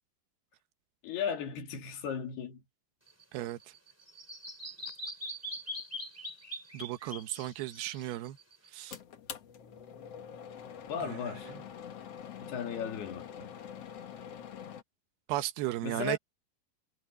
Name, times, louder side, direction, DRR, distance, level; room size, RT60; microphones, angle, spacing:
voice 1, 1.0-2.6 10.9-11.6 12.4-13.6 15.8-16.2, left 7 dB, 75° left, 4.7 m, -36 dB
Bird vocalization bird call bird song, 3.1-9.0, equal, 5° right, 2.6 m, -43 dB
voice 2, 6.7-8.4 8.7-8.9 11.0-11.2 15.3-16.2, right 15 dB, 75° right, 3.0 m, -35 dB
sound 1, 8.9-14.8, left 8 dB, 55° left, 1.9 m, -45 dB
omnidirectional pair, 4.7 m